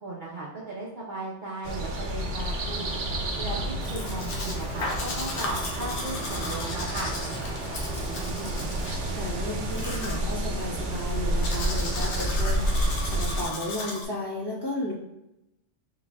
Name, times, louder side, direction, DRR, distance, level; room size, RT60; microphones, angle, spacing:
voice 1, 0.0-2.9 3.4-7.1, right 2 dB, 45° right, -5 dB, 0.8 m, -36 dB
sound 1, 1.6-13.5, right 1 dB, 80° right, 1.1 m, -30 dB
sound 2, 1.9-9.6, left 2 dB, 15° right, 1.2 m, -44 dB
Domestic sounds home sounds, 3.8-14.0, left 2 dB, 75° left, 1.1 m, -36 dB
voice 2, 8.0-14.9, left 1 dB, 20° left, -7 dB, 1.3 m, -34 dB
4.3 x 4.2 x 2.3 m, 0.88 s
omnidirectional pair, 1.2 m